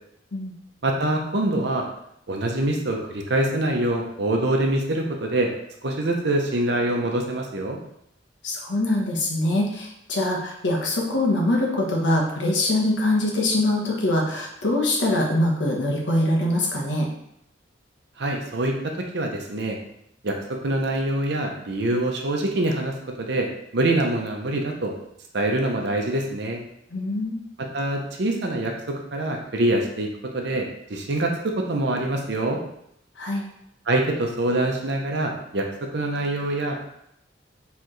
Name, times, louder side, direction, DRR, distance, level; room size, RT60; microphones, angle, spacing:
voice 1, 0.8-1.8 2.3-5.5 5.8-7.8 18.2-19.8 20.2-20.4 20.6-23.5 23.7-24.9 25.3-26.6 27.7-30.1 30.3-32.6 33.9-35.7 35.9-36.8, right 1 dB, 65° right, 1 dB, 0.8 m, -25 dB
voice 2, 8.4-17.1 26.9-27.4 33.2-33.4, left 1 dB, 75° left, -1 dB, 1.1 m, -23 dB
4.5 x 3.3 x 3.2 m, 0.77 s
head